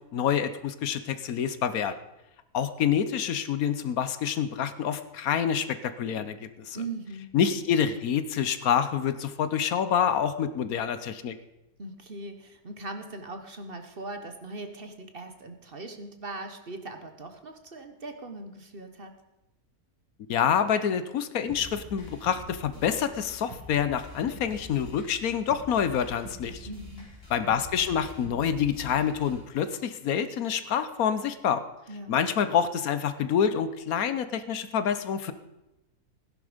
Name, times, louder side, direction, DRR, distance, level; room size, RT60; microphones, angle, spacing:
voice 1, 0.1-1.9 2.5-6.8 7.3-11.4 20.3-26.7 27.3-31.6 32.1-35.3, left 8 dB, 75° left, 12 dB, 1.3 m, -27 dB
voice 2, 6.7-7.3 11.8-19.1 26.7-27.1 31.9-32.1, right 2 dB, 40° right, 7 dB, 1.2 m, -40 dB
sound 1, 21.5-29.5, left 1 dB, 40° left, 5.0 m, -45 dB
16.0 x 10.5 x 5.1 m, 0.98 s
omnidirectional pair, 1.6 m